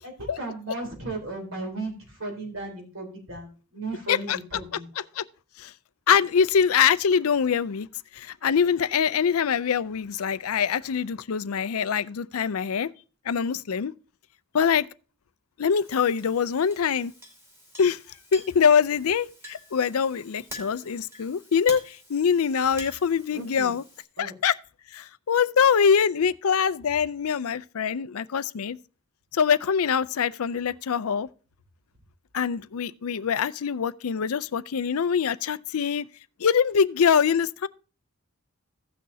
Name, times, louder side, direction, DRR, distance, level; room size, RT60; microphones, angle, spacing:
voice 1, 0.0-4.9 23.3-23.7 24.2-24.3, right 2 dB, 65° right, 3.8 m, -35 dB
voice 2, 6.1-7.9 8.1-12.9 13.3-13.9 14.5-14.8 15.6-17.1 17.8-18.0 18.3-23.8 24.2-24.5 24.9-28.8 29.3-31.3 32.3-36.1 36.4-37.7, left 7 dB, 85° left, 0.5 m, -24 dB
Chink clink, 15.7-24.0, equal, 10° right, 2.7 m, -47 dB
16.5 x 6.2 x 2.7 m
head